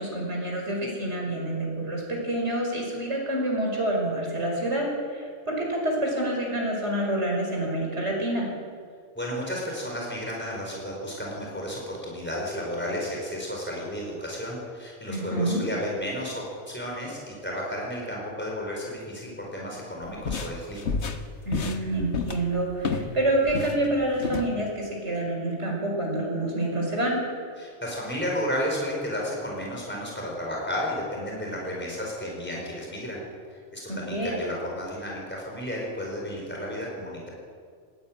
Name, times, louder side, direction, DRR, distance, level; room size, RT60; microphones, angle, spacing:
voice 1, 0.0-4.9 5.1-8.5 15.1-15.6 21.5-27.2 33.9-34.3, right 1 dB, 65° right, -1 dB, 5.5 m, -27 dB
voice 2, 9.1-20.9 27.6-37.3, equal, 10° left, -2 dB, 4.9 m, -33 dB
sound 1, 20.0-23.2 23.5-24.5, left 4 dB, 65° left, 1.5 m, -30 dB
20.0 x 14.5 x 9.0 m, 2.1 s
omnidirectional pair, 1.2 m